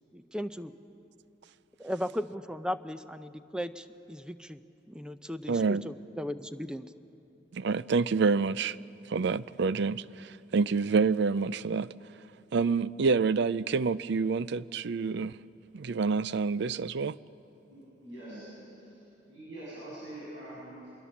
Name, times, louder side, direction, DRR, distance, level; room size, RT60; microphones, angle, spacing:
voice 1, 0.1-0.7 1.8-4.6 4.9-6.9, equal, 5° right, 0.6 m, -36 dB
voice 2, 5.5-5.8 7.5-8.8 9.1-11.9 12.5-15.4 15.7-17.2, right 4 dB, 65° right, 0.5 m, -27 dB
voice 3, 17.7-18.9 19.3-20.9, right 1 dB, 85° right, 7.7 m, -44 dB
25.5 x 21.5 x 7.2 m
head